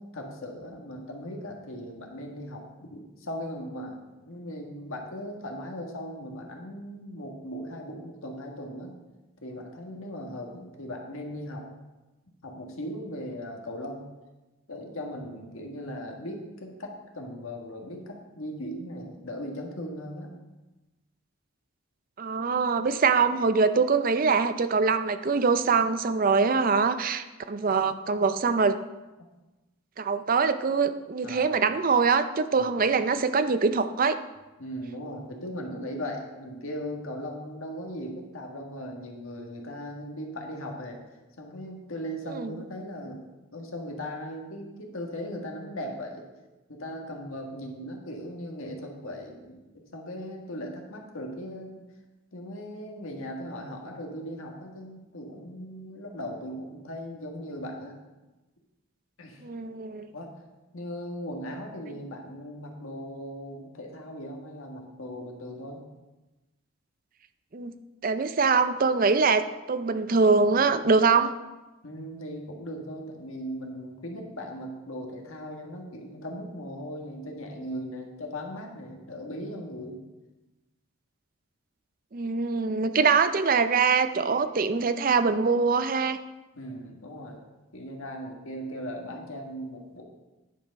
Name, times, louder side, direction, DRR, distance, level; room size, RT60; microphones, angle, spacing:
voice 1, 0.0-9.0 9.4-11.7 12.4-14.1 14.7-20.3 31.2-31.6 32.6-32.7 34.6-41.0 41.4-43.2 43.5-46.2 46.7-51.8 52.3-58.0 59.2-59.4 60.1-60.3 60.7-65.9 71.8-80.0 86.5-87.4 87.7-90.0, equal, 75° left, 1 dB, 1.6 m, -38 dB
voice 2, 22.2-28.8 30.0-34.2 42.3-42.5 59.4-60.1 67.5-67.8 68.0-71.3 82.1-86.2, right 4 dB, 40° right, 11 dB, 0.5 m, -23 dB
10.0 x 6.1 x 5.3 m, 1.1 s
head